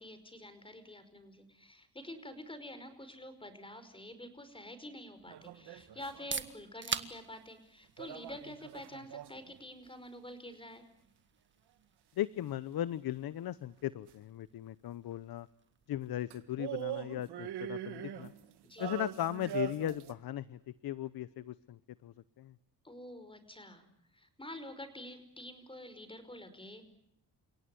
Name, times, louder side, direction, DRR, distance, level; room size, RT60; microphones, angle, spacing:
voice 1, 0.0-10.8 18.6-19.0 22.8-23.9 24.1-26.8, left 1 dB, 15° left, 11 dB, 5.2 m, -48 dB
sound 1, 5.3-6.5 8.0-9.6 14.1-14.2 16.3-20.1, right 11 dB, 75° right, 2.1 m, -42 dB
sound 2, 6.0-21.7, right 5 dB, 30° right, 1.7 m, -48 dB
voice 2, 12.2-15.5 15.9-18.3 18.8-22.5, left 12 dB, 60° left, 17 dB, 0.9 m, -37 dB
30.0 x 17.5 x 9.8 m, 0.79 s
cardioid pair, 90°, 40 cm